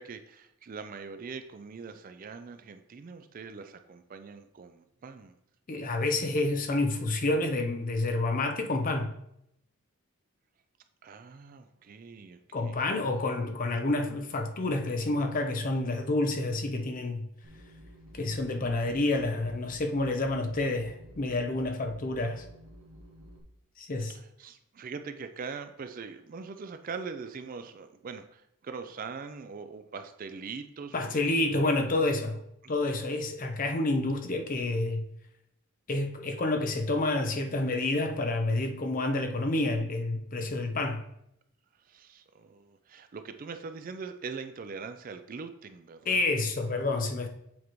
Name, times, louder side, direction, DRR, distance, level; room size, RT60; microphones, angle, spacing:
voice 1, 0.0-5.4 11.0-12.8 24.0-31.4 32.6-32.7 33.0-33.1 41.8-46.2, right 5 dB, 40° right, 0.3 m, -42 dB
voice 2, 5.7-9.1 12.5-17.3 18.1-22.4 23.8-24.1 30.9-32.4 32.7-35.0 35.9-41.0 46.1-47.3, left 2 dB, 40° left, 0.5 m, -29 dB
sound 1, 17.4-23.4, equal, 75° right, 1.0 m, -51 dB
7.2 x 4.7 x 3.0 m
head